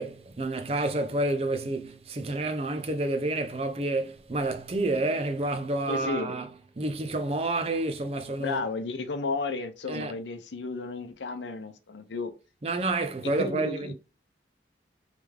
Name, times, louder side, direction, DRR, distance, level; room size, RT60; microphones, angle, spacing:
voice 1, 0.0-6.5 6.8-8.6 9.9-10.1 12.6-13.9, right 2 dB, 35° right, 0.5 m, -29 dB
voice 2, 5.9-6.3 8.4-12.3 13.2-13.9, left 3 dB, 90° left, 0.7 m, -33 dB
3.5 x 3.3 x 3.2 m
head